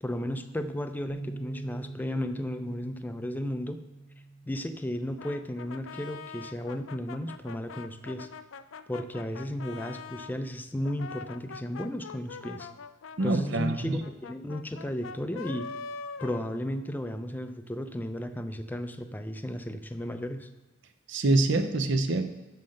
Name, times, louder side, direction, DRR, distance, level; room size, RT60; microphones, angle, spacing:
voice 1, 0.0-3.8 4.5-8.3 8.9-12.7 13.2-15.7 16.2-20.5, left 1 dB, 10° left, 8 dB, 0.5 m, -34 dB
sound 1, 1.1-7.3, right 2 dB, 10° right, 0.8 m, -45 dB
Brass instrument, 5.2-10.4 10.8-17.1, left 5 dB, 80° left, 0.5 m, -43 dB
voice 2, 13.2-14.0 21.1-22.2, right 2 dB, 65° right, 8 dB, 0.7 m, -25 dB
7.6 x 5.6 x 6.5 m, 1.1 s
head